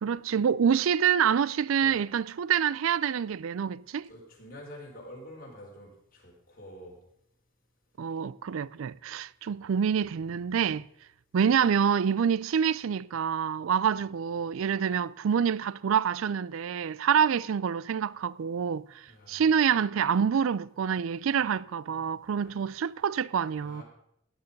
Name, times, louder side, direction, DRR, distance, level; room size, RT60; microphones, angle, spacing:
voice 1, 0.0-4.1 8.0-10.9 11.3-19.0 19.3-23.8, right 7 dB, 80° right, 0.4 m, -27 dB
voice 2, 4.1-7.0 19.1-19.4 22.4-22.5 23.6-23.8, equal, 45° left, 4.2 m, -47 dB
16.0 x 9.3 x 5.3 m
head